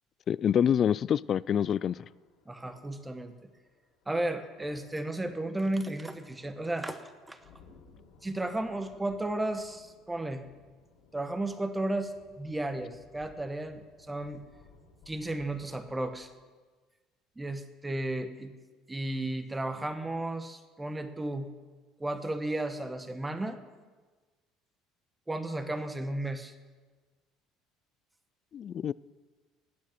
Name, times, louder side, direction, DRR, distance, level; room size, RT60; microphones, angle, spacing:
voice 1, 0.3-2.0 28.5-28.9, left 9 dB, 45° left, 0.3 m, -26 dB
sound 1, 1.8-16.3, left 4 dB, 75° left, 2.9 m, -60 dB
voice 2, 2.5-3.3 4.1-7.4 8.2-10.5 11.1-14.4 15.1-16.3 17.4-18.5 18.9-21.5 22.0-23.6 25.3-26.5, right 1 dB, 10° right, 1.2 m, -34 dB
16.0 x 9.5 x 6.0 m
supercardioid pair, 100°, 0 cm